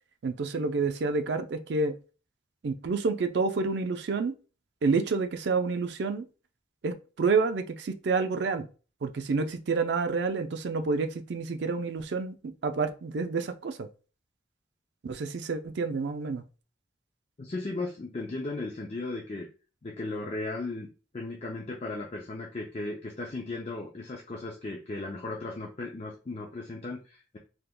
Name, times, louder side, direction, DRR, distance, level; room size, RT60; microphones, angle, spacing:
voice 1, 0.2-2.0 2.6-4.3 4.8-6.3 6.8-8.7 9.0-13.9 15.0-16.4, right 4 dB, 65° right, 0.4 m, -29 dB
voice 2, 17.4-19.5 19.8-20.9 21.1-27.4, left 2 dB, 35° left, 0.4 m, -36 dB
3.4 x 2.9 x 2.2 m
head